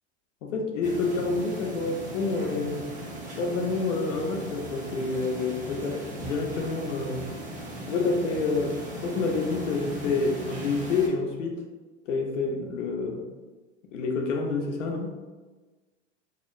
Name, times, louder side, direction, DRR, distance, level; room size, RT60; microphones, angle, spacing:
voice 1, 0.4-2.8 3.4-7.3 7.9-11.6 12.1-13.3 13.9-15.1, left 3 dB, 80° left, 2 dB, 0.6 m, -28 dB
sound 1, 0.8-11.1, right 1 dB, 20° right, 0.6 m, -38 dB
2.8 x 2.0 x 2.4 m, 1.3 s
hypercardioid pair, 100°, 36 cm